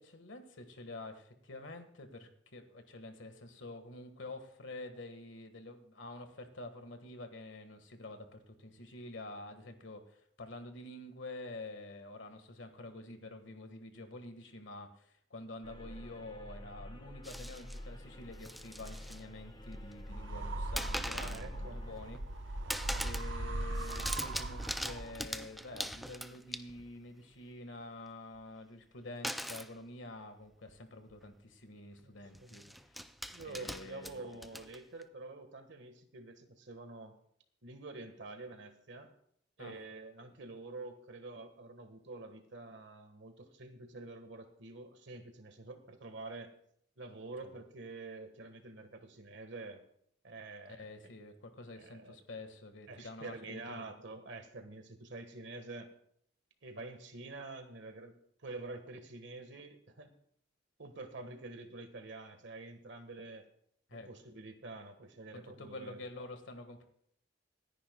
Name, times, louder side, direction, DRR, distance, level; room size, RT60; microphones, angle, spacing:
voice 1, 0.0-22.2 22.5-22.6 23.0-32.6 33.4-34.4 39.6-39.8 50.7-53.8 63.9-64.1 65.3-66.8, left 2 dB, 75° left, 7 dB, 1.7 m, -48 dB
sound 1, 15.6-22.1, left 1 dB, 25° left, 1.3 m, -48 dB
sound 2, 17.2-17.8 18.3-19.2 19.5-20.1 20.8-21.5 21.9-22.4 22.7-23.3 23.6-27.0 29.2-29.7 30.7-30.8 31.1-31.3 32.3-35.0, equal, ahead, 0.4 m, -41 dB
sound 3, 20.1-25.4, right 1 dB, 85° right, 0.9 m, -39 dB
voice 2, 21.1-21.8 22.6-23.1 32.0-32.8 33.3-37.2 37.6-39.1 39.6-46.5 47.0-49.8 50.2-50.9 51.7-52.2 52.9-55.9 56.6-60.1 60.8-63.5 63.9-66.0, right 3 dB, 70° right, 7 dB, 1.6 m, -47 dB
26.5 x 10.0 x 2.3 m, 0.69 s
head